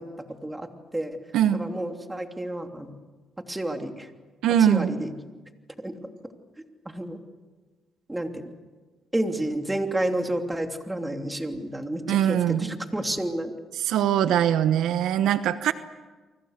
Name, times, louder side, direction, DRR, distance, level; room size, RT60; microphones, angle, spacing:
voice 1, 0.0-1.2 1.5-2.9 3.5-4.1 4.6-5.1 5.8-5.9 6.8-7.2 8.1-8.5 9.1-13.5, right 1 dB, 10° right, 4 dB, 3.0 m, -30 dB
voice 2, 4.4-5.0 12.1-12.7 13.8-15.7, right 10 dB, 85° right, 11 dB, 1.1 m, -22 dB
30.0 x 24.0 x 6.7 m, 1.3 s
cardioid pair, 90°, 0 cm